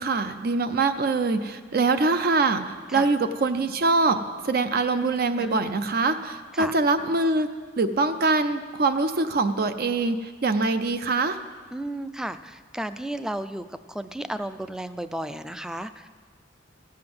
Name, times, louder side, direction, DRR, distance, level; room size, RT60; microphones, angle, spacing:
voice 1, 0.0-11.4, right 3 dB, 50° right, 9 dB, 0.5 m, -24 dB
voice 2, 5.4-5.8 6.5-6.7 11.7-16.1, right 1 dB, 5° right, 12 dB, 0.3 m, -33 dB
15.0 x 5.7 x 7.8 m, 1.5 s
head